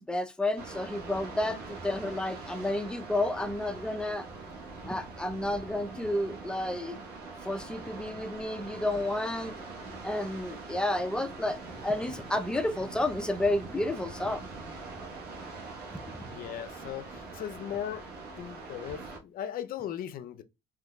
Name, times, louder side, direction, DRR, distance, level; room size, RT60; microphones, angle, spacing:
voice 1, 0.0-4.3 4.8-7.0 7.4-9.6 10.0-14.4 16.1-16.2, left 1 dB, 5° left, 0.4 m, -31 dB
sound 1, 0.6-19.2, right 3 dB, 70° right, 1.1 m, -43 dB
voice 2, 16.3-18.1 18.4-20.4, left 10 dB, 60° left, 0.5 m, -38 dB
3.6 x 2.9 x 2.2 m
cardioid pair, 110°, 17 cm